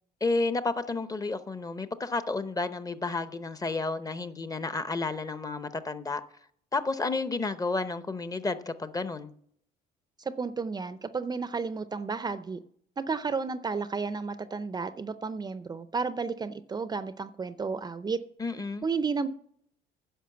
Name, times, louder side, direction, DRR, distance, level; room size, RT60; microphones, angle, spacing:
voice 1, 0.2-6.2 6.7-9.3 18.4-18.8, left 3 dB, 20° left, 0.8 m, -31 dB
voice 2, 10.2-12.6 13.0-18.2 18.8-19.3, right 4 dB, 25° right, 0.5 m, -32 dB
10.0 x 6.3 x 7.8 m
cardioid pair, 110°, 17 cm